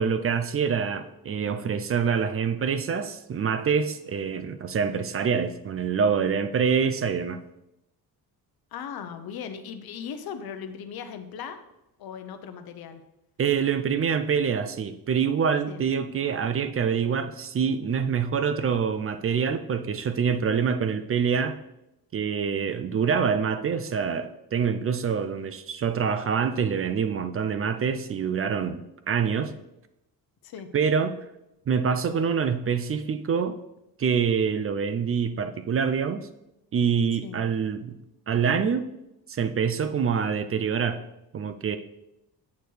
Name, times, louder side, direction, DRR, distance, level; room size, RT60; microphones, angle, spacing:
voice 1, 0.0-7.4 13.4-21.5 22.1-29.5 30.7-31.1 31.7-33.6 34.0-36.3 36.7-38.0 38.3-38.8 39.3-41.0 41.3-41.8, right 6 dB, 35° right, 10 dB, 0.4 m, -26 dB
voice 2, 8.7-11.6 12.0-13.0 15.7-15.8 30.4-30.7 37.2-37.4, left 7 dB, 70° left, 8 dB, 0.8 m, -38 dB
8.1 x 6.8 x 3.3 m, 0.89 s
cardioid pair, 145°, 39 cm